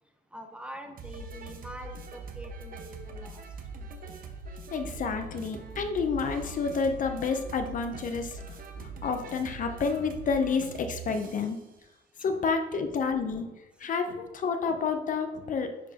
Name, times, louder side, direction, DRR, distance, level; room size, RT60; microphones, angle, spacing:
voice 1, 0.3-3.4, equal, 5° right, 4 dB, 0.7 m, -44 dB
sound 1, 1.0-11.6, right 3 dB, 55° right, 0.8 m, -42 dB
voice 2, 4.7-11.6 12.2-13.5 13.8-15.7, left 5 dB, 50° left, 6 dB, 0.6 m, -30 dB
10.0 x 4.3 x 2.8 m, 1.0 s
cardioid pair, 130°, 18 cm